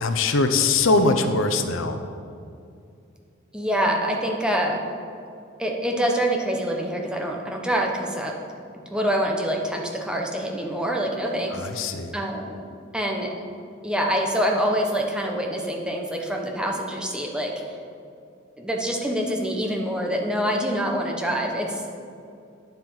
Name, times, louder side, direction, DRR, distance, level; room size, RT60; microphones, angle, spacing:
voice 1, 0.0-2.0 11.5-12.1, left 3 dB, 80° left, 8 dB, 0.7 m, -22 dB
voice 2, 3.5-4.8 5.6-8.3 8.9-11.9 12.1-12.6 12.9-13.3 13.8-17.5 18.6-21.8, equal, 5° right, 0 dB, 1.0 m, -25 dB
9.4 x 7.4 x 5.6 m, 2.5 s
head